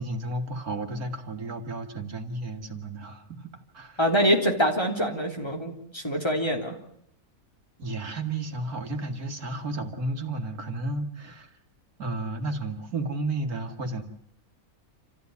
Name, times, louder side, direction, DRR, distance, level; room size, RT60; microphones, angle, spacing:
voice 1, 0.0-3.5 3.7-4.0 7.8-11.5 12.0-14.0, right 2 dB, 80° right, 5 dB, 2.4 m, -32 dB
voice 2, 4.0-6.7, equal, 15° left, 1 dB, 3.2 m, -25 dB
28.0 x 14.5 x 9.5 m, 0.73 s
omnidirectional pair, 1.6 m